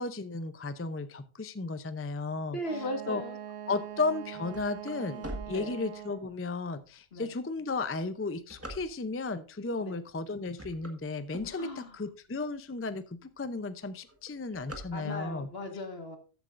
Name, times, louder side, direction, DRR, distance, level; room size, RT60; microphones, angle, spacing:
voice 1, 0.0-2.6 3.1-3.2 3.7-13.0 13.4-15.5, left 3 dB, 20° left, 12 dB, 0.4 m, -34 dB
voice 2, 2.5-3.4 5.5-5.8 7.1-7.3 9.8-10.0 11.5-12.0 14.9-16.2, left 1 dB, 65° left, 5 dB, 1.8 m, -37 dB
Wind instrument woodwind instrument, 2.6-6.4, right 10 dB, 85° right, 1.0 m, -43 dB
sound 1, 4.0-6.3 6.9-7.0 7.6-9.3 10.0-10.2 10.5-12.0 12.5-12.6 12.8-12.9 13.2-13.6 13.9-15.5, right 1 dB, 15° right, 1.5 m, -44 dB
14.0 x 8.2 x 2.5 m, 0.34 s
omnidirectional pair, 1.1 m